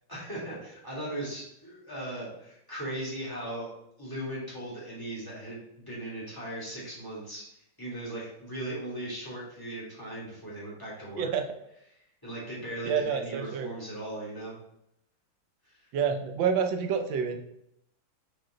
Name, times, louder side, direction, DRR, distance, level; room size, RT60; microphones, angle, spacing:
voice 1, 0.1-3.7 4.0-7.4 7.8-11.3 12.2-14.5, right 1 dB, 10° left, -7 dB, 2.5 m, -38 dB
voice 2, 12.8-13.7 15.9-17.4, right 6 dB, 75° right, 5 dB, 1.4 m, -28 dB
6.5 x 4.2 x 3.8 m, 0.78 s
omnidirectional pair, 2.1 m